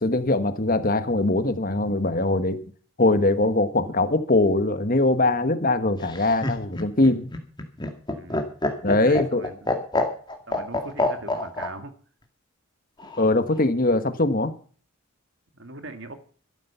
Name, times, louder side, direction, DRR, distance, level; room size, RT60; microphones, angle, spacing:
voice 1, 0.0-2.6 3.0-7.3 8.8-9.4 13.2-14.5, left 2 dB, 40° left, 10 dB, 1.3 m, -22 dB
Laughter, 6.0-11.7 13.0-13.6, left 2 dB, 20° left, 2.0 m, -27 dB
voice 2, 8.1-8.5 9.1-9.7 10.5-11.9 15.5-16.2, right 2 dB, 60° right, 8 dB, 2.0 m, -40 dB
13.5 x 12.0 x 5.7 m, 0.44 s
head